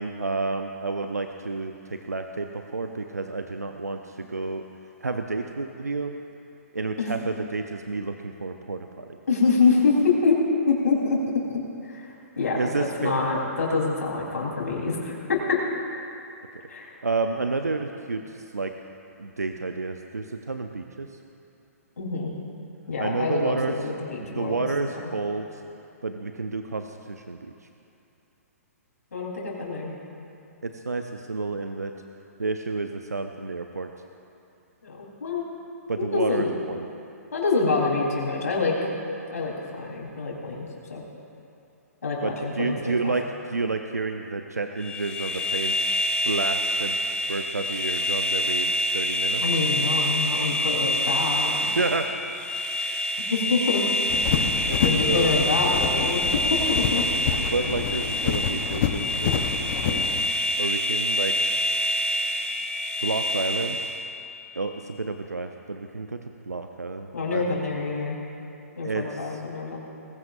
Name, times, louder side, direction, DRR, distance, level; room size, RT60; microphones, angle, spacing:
voice 1, 0.0-4.6 5.0-6.1 6.7-9.1 12.6-13.3 16.5-16.6 17.0-18.7 19.2-21.1 23.0-23.8 24.3-25.5 26.0-27.5 30.6-31.9 32.4-33.9 35.9-36.9 42.2-45.8 46.2-47.0 47.3-49.4 51.7-52.1 54.7-55.3 57.4-60.0 60.6-61.3 63.0-63.8 64.6-66.2 66.5-67.6 68.8-69.0, right 3 dB, 90° right, 5 dB, 0.7 m, -30 dB
voice 2, 9.3-10.4 10.7-11.2 11.5-11.6 11.8-12.1 12.4-15.2 15.5-15.6 16.7-16.9 22.0-22.3 22.9-24.1 24.3-24.7 24.9-25.1 29.1-29.9 34.8-35.4 35.9-36.5 37.3-38.9 39.3-41.0 42.0-43.1 49.4-51.7 53.3-53.8 54.8-56.4 56.7-57.0 67.1-68.2 68.8-69.8, left 4 dB, 75° left, -3 dB, 4.0 m, -26 dB
sound 1, 44.8-64.1, equal, 10° left, 1.5 m, -26 dB
sound 2, 54.1-60.3, left 8 dB, 45° left, 1.0 m, -28 dB
20.5 x 16.0 x 2.6 m, 2.7 s
figure-of-eight pair, 120°, 8 cm